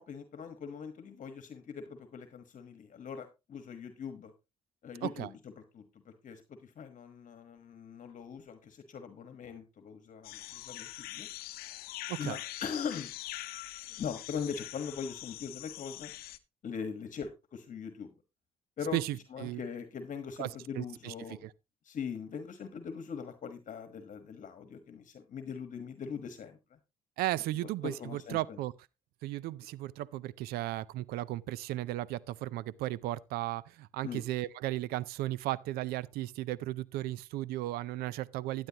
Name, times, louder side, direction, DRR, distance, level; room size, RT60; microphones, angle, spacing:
voice 1, 0.0-4.3 4.8-5.4 5.7-11.3 12.2-13.1 13.9-16.1 16.6-18.1 18.8-19.0 19.3-21.4 21.8-26.8 27.6-28.6 34.0-34.2, left 6 dB, 55° left, 1.3 m, -41 dB
sound 1, 10.2-16.4, left 16 dB, 90° left, 0.7 m, -43 dB
voice 2, 18.9-19.6 20.4-21.5 27.2-28.7 29.2-38.7, right 16 dB, 90° right, 0.4 m, -35 dB
12.5 x 9.5 x 2.8 m
cardioid pair, 85°, 15 cm